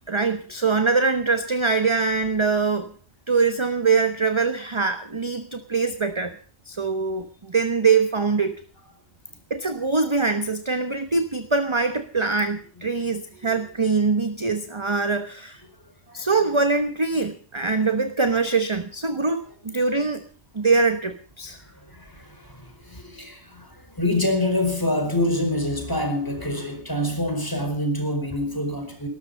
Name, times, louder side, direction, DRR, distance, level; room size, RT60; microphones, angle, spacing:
voice 1, 0.1-2.9 3.3-6.4 6.7-8.6 9.5-15.6 16.1-20.2 20.5-21.6, right 4 dB, 25° right, 1.0 m, -23 dB
voice 2, 21.6-29.1, left 1 dB, 15° left, 4.7 m, -26 dB
19.0 x 13.0 x 5.4 m
omnidirectional pair, 1.3 m